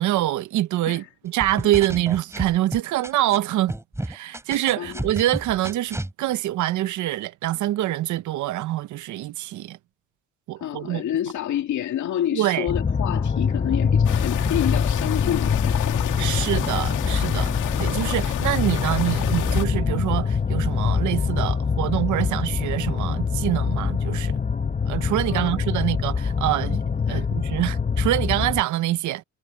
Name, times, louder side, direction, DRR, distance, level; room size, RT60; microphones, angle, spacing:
voice 1, 0.0-3.7 4.0-9.8 10.5-11.0 12.3-12.7 16.2-17.5 17.8-24.4 24.9-29.2, right 14 dB, 75° right, 0.7 m, -25 dB
sound 1, 1.4-3.4 3.7-6.1, right 1 dB, 10° right, 6.5 m, -31 dB
voice 2, 10.6-16.0 25.3-25.6 27.1-27.3, left 11 dB, 75° left, 2.2 m, -28 dB
sound 2, 12.7-28.6, left 5 dB, 25° left, 1.0 m, -24 dB
sound 3, 14.0-19.7, left 13 dB, 90° left, 1.9 m, -29 dB
cardioid pair, 90°, 30 cm